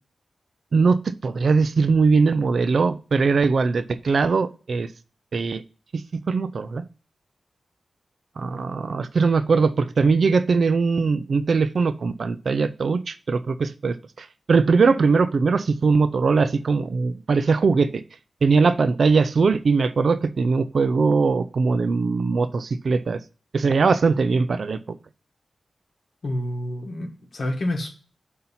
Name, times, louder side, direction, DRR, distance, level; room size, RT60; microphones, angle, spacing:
voice 1, 0.7-4.9 5.3-5.6 5.9-6.0 6.3-6.8 8.4-18.0 18.4-23.2 23.5-24.8, right 4 dB, 65° right, 13 dB, 0.5 m, -21 dB
voice 2, 26.2-27.9, left 1 dB, 70° left, 2 dB, 1.5 m, -28 dB
7.7 x 2.9 x 5.6 m, 0.37 s
cardioid pair, 75°, 0 cm